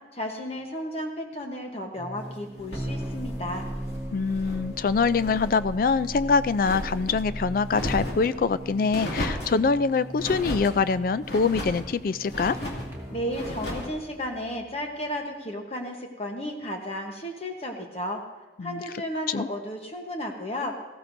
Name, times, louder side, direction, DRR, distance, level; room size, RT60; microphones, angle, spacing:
voice 1, 0.1-3.7 13.1-18.2 18.6-20.7, equal, 35° left, 3 dB, 1.0 m, -33 dB
sound 1, 1.9-15.3, right 1 dB, 10° right, 1.6 m, -38 dB
sound 2, 2.6-4.7 5.0-5.5 5.9-7.2 7.7-8.3 8.9-9.6 10.2-10.8 11.2-11.9 12.3-12.9 13.3-13.9, left 1 dB, 65° left, 2.2 m, -35 dB
voice 2, 4.1-12.6 18.6-18.8 19.3-19.5, left 4 dB, 50° left, 15 dB, 0.3 m, -24 dB
19.0 x 14.5 x 2.6 m, 1.2 s
head